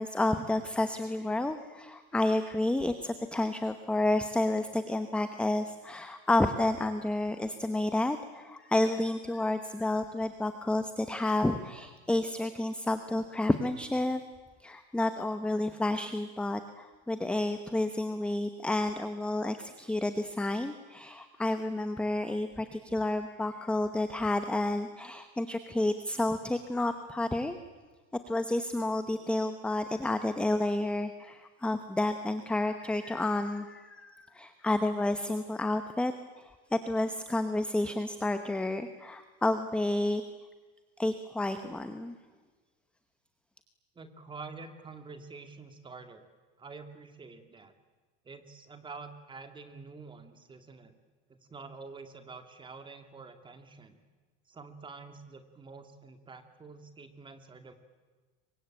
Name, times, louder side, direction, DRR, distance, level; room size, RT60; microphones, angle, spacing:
voice 1, 0.0-14.2 14.6-27.6 28.3-36.1 36.7-40.2 41.0-42.1, left 2 dB, 5° left, 9 dB, 1.0 m, -30 dB
voice 2, 44.0-46.3 46.6-47.7 48.2-50.9 51.3-54.0 54.5-57.7, right 4 dB, 15° right, 8 dB, 2.3 m, -47 dB
27.5 x 23.5 x 9.0 m, 1.3 s
supercardioid pair, 155°, 35 cm